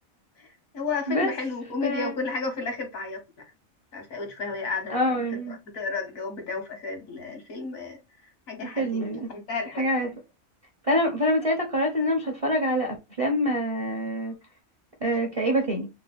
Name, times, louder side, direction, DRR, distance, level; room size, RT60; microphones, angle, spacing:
voice 1, 0.7-3.2 3.9-5.2 5.5-8.0 8.5-9.8, left 4 dB, 80° left, 1.5 m, -32 dB
voice 2, 4.9-5.6 8.6-9.3 9.8-10.1 10.8-14.3 15.0-15.9, equal, 40° right, 0.5 m, -25 dB
3.3 x 2.1 x 3.4 m
omnidirectional pair, 1.4 m